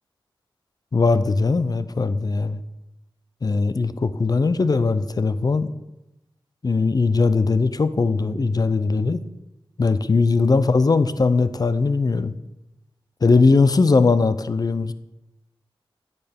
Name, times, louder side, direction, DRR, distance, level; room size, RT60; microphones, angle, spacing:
voice 1, 0.9-2.6 3.4-5.7 6.6-9.2 9.8-12.3 13.2-14.9, left 4 dB, 45° left, 13 dB, 0.5 m, -19 dB
9.9 x 6.6 x 3.5 m, 0.94 s
wide cardioid pair, 60°, 9 cm